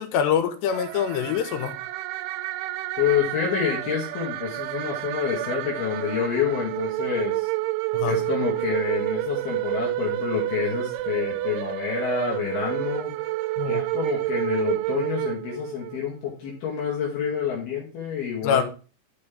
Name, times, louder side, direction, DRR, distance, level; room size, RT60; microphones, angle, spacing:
voice 1, 0.0-1.8 7.9-8.2 13.6-13.8 18.4-18.6, left 8 dB, 75° left, 3.0 m, -25 dB
sound 1, 0.7-16.0, right 18 dB, 90° right, 2.9 m, -29 dB
voice 2, 3.0-7.5 8.1-13.2 13.7-18.6, left 8 dB, 60° left, 4.0 m, -28 dB
12.5 x 5.5 x 3.5 m
omnidirectional pair, 5.3 m